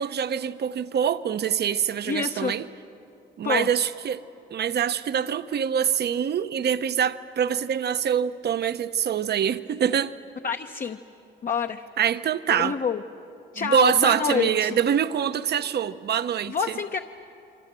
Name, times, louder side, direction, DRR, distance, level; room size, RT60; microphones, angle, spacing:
voice 1, 0.0-2.7 3.4-4.2 4.5-10.1 12.0-12.8 13.6-16.8, right 8 dB, 55° right, 0.9 m, -25 dB
voice 2, 2.1-2.5 3.4-3.7 10.4-11.0 11.4-11.9 12.5-13.0 13.5-14.8 16.5-17.0, left 6 dB, 45° left, 0.9 m, -27 dB
28.5 x 24.5 x 7.6 m
cardioid pair, 90°, 20 cm